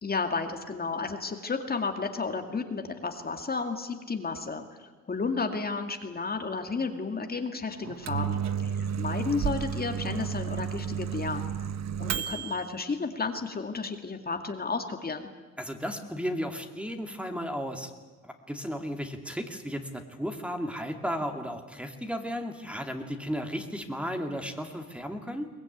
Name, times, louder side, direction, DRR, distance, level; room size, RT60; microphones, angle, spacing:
voice 1, 0.0-11.5 12.0-15.3, left 4 dB, 30° left, 5 dB, 2.2 m, -32 dB
Microwave oven, 7.8-12.6, right 8 dB, 60° right, 1.2 m, -32 dB
voice 2, 15.6-17.9 18.2-25.5, equal, 5° right, 5 dB, 2.5 m, -34 dB
23.0 x 19.5 x 9.4 m, 1.3 s
cardioid pair, 90°, 30 cm